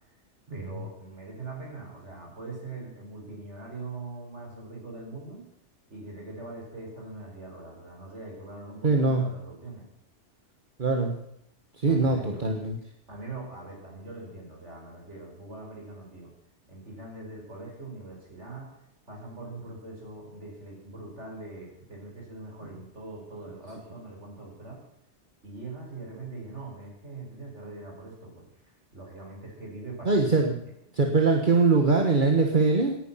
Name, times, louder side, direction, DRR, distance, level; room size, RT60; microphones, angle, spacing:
voice 1, 0.5-5.5 5.9-9.9 11.9-12.4 13.1-16.3 16.7-18.7 19.1-24.8 25.4-28.5 28.9-30.5, right 2 dB, 80° right, 0 dB, 5.3 m, -42 dB
voice 2, 8.8-9.3 10.8-11.2 11.8-12.8 30.1-30.6 30.9-33.0, right 3 dB, 45° right, 3 dB, 1.7 m, -22 dB
18.0 x 11.0 x 5.7 m, 0.78 s
omnidirectional pair, 1.2 m